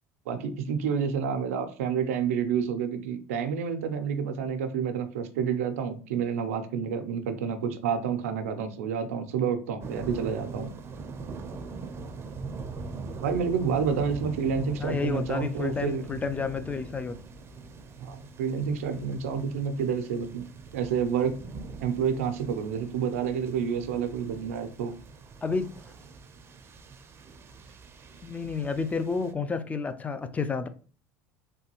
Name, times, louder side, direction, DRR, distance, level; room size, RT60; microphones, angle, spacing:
voice 1, 0.3-10.7 13.2-16.0 18.0-20.5 20.7-21.3 21.8-24.9, right 7 dB, 85° right, 0.5 m, -29 dB
sound 1, 9.8-29.3, right 4 dB, 35° right, 0.5 m, -42 dB
voice 2, 14.8-17.2 25.4-25.7 28.2-30.7, left 5 dB, 20° left, 0.4 m, -30 dB
3.2 x 2.2 x 2.9 m
supercardioid pair, 90°, 7 cm